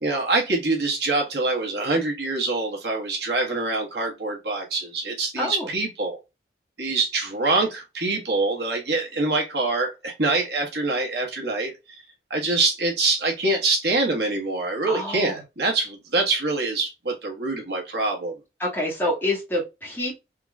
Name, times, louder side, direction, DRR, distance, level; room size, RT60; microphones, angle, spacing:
voice 1, 0.0-6.2 6.8-11.7 12.3-18.3, right 3 dB, 70° right, 1.2 m, -25 dB
voice 2, 5.4-5.7 14.9-15.4 18.6-20.2, left 1 dB, 10° left, 1.7 m, -27 dB
3.8 x 3.0 x 2.3 m
head